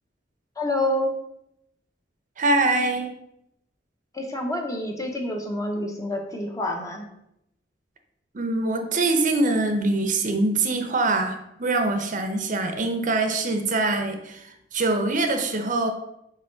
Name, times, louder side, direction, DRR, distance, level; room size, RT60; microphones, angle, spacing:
voice 1, 0.6-1.1 4.1-7.1, left 1 dB, 20° left, 2 dB, 0.8 m, -27 dB
voice 2, 2.4-3.1 8.3-15.9, right 2 dB, 45° right, 6 dB, 0.7 m, -24 dB
5.7 x 4.7 x 3.8 m, 0.81 s
head